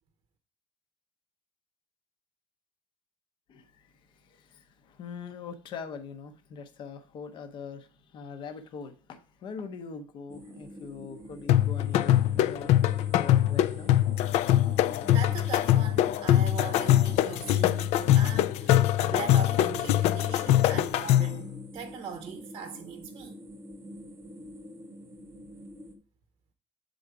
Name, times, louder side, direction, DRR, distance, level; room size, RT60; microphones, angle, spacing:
voice 1, 3.5-12.8 13.1-14.0, left 5 dB, 45° left, 0.7 m, -42 dB
sound 1, 10.3-26.0, equal, 20° right, 1.0 m, -46 dB
sound 2, 11.5-21.4, left 13 dB, 65° left, 0.4 m, -23 dB
voice 2, 15.1-23.4, right 7 dB, 40° right, 0.7 m, -40 dB
7.8 x 3.8 x 4.7 m
cardioid pair, 175°, 12 cm